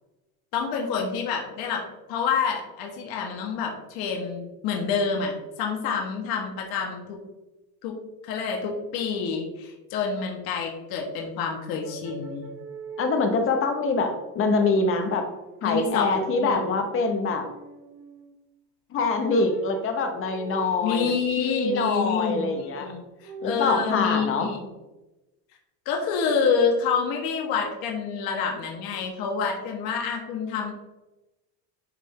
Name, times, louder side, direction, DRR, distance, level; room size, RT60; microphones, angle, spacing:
voice 1, 0.5-7.2 7.8-7.9 8.2-12.5 15.6-16.1 16.4-16.7 20.8-24.7 25.8-30.7, left 6 dB, 60° left, 1 dB, 1.3 m, -28 dB
sound 1, 11.7-13.5 14.8-15.6 15.9-16.8 17.2-18.4 19.4-21.2 22.3-24.0, right 3 dB, 55° right, 0.9 m, -42 dB
voice 2, 13.0-15.3 15.6-17.4 18.9-22.9 23.4-24.5, left 3 dB, 30° left, 5 dB, 0.8 m, -24 dB
9.7 x 3.3 x 3.7 m, 1.0 s
cardioid pair, 165°, 41 cm